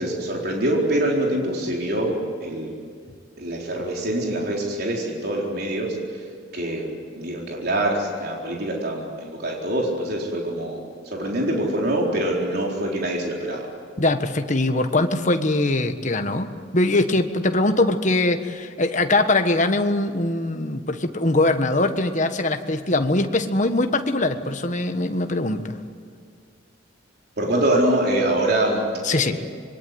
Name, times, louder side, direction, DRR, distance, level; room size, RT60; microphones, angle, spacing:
voice 1, 0.0-2.8 3.4-6.3 6.5-13.7 27.4-29.4, right 1 dB, 55° right, -1 dB, 4.3 m, -25 dB
voice 2, 14.0-25.8 29.0-29.4, left 2 dB, 40° left, 7 dB, 1.5 m, -22 dB
26.0 x 22.5 x 9.5 m, 2.1 s
head